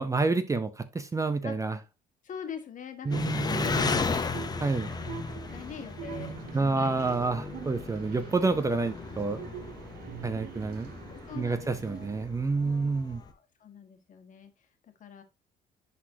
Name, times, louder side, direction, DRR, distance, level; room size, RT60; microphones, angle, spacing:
voice 1, 0.0-1.8 3.1-4.0 4.6-4.9 6.5-9.4 10.2-10.9 11.4-13.2, right 3 dB, 20° right, 0.6 m, -28 dB
voice 2, 2.2-4.4 5.0-6.9 11.1-12.2 12.5-15.2, left 6 dB, 50° left, 1.6 m, -44 dB
Engine, 3.1-13.3, left 4 dB, 25° left, 0.8 m, -35 dB
sound 1, 3.1-12.2, right 11 dB, 65° right, 0.7 m, -44 dB
10.5 x 4.1 x 2.8 m
cardioid pair, 110°, 17 cm